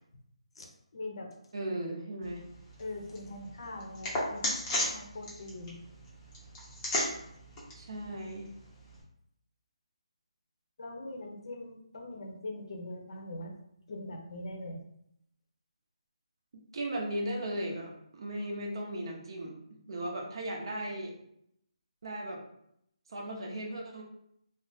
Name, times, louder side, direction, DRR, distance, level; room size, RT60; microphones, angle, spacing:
voice 1, 0.6-1.3 2.8-5.8 10.8-13.5 13.9-14.8, left 2 dB, 55° left, 2 dB, 0.7 m, -42 dB
voice 2, 1.5-2.4 7.7-8.5 16.7-19.6 19.9-21.1 22.0-22.4 23.1-24.0, right 1 dB, 45° right, -1 dB, 0.6 m, -36 dB
sound 1, 2.2-9.0, left 1 dB, 15° left, 0.6 m, -37 dB
2.5 x 2.0 x 3.8 m, 0.75 s
hypercardioid pair, 165°, 3 cm